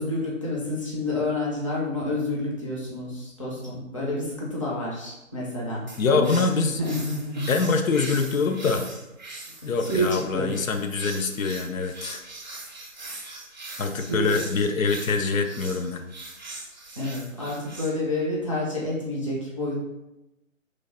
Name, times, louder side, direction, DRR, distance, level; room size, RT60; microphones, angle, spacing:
voice 1, 0.0-6.3 6.7-7.5 9.7-10.6 13.7-14.3 17.0-19.8, left 1 dB, 25° left, -5 dB, 0.5 m, -29 dB
sound 1, 5.9-17.9, right 2 dB, 35° right, 0.4 m, -41 dB
voice 2, 6.0-6.8 7.5-8.9 9.6-12.2 13.8-16.0, left 4 dB, 80° left, 6 dB, 0.5 m, -24 dB
3.2 x 2.2 x 3.7 m, 0.94 s
figure-of-eight pair, 150°, 40 cm